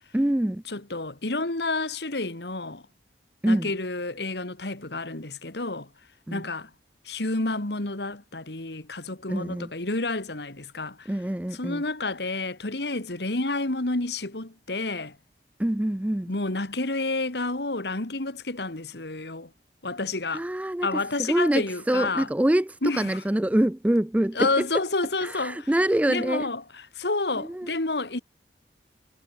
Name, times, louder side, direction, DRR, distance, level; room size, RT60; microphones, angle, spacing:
voice 1, 0.1-0.6 3.4-3.7 6.3-6.4 9.3-9.7 11.1-11.8 15.6-16.3 20.3-24.8 25.2-26.5 27.4-27.7, right 1 dB, 10° right, 0.3 m, -25 dB
voice 2, 0.7-2.8 3.5-5.9 6.3-6.7 7.1-11.1 11.6-15.2 16.3-19.5 19.8-20.4 20.8-22.3 22.8-23.2 24.4-25.7 26.1-26.6 27.0-28.2, left 2 dB, 75° left, 2.1 m, -29 dB
head